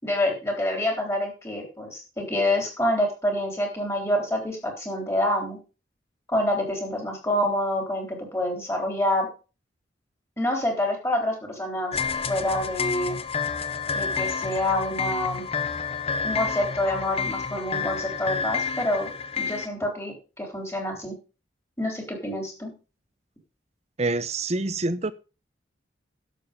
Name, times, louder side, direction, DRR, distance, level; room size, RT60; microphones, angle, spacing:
voice 1, 0.0-5.6 6.3-9.3 10.4-11.9 12.3-13.2 13.9-15.4 16.2-19.1 19.4-21.1 21.8-22.7, left 1 dB, 15° left, 2 dB, 3.6 m, -27 dB
sound 1, 11.9-19.7, left 5 dB, 30° left, 0.8 m, -29 dB
voice 2, 24.0-25.1, right 2 dB, 35° right, 14 dB, 0.8 m, -26 dB
11.5 x 7.7 x 5.2 m, 0.33 s
head